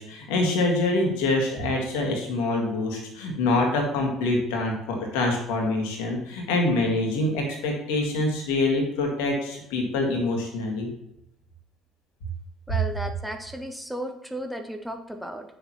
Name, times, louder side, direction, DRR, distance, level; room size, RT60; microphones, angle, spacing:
voice 1, 0.0-10.9, left 2 dB, 65° left, 1 dB, 1.8 m, -25 dB
voice 2, 12.7-15.6, equal, ahead, 4 dB, 0.7 m, -34 dB
8.5 x 6.7 x 3.0 m, 0.82 s
figure-of-eight pair, 50°, 0 cm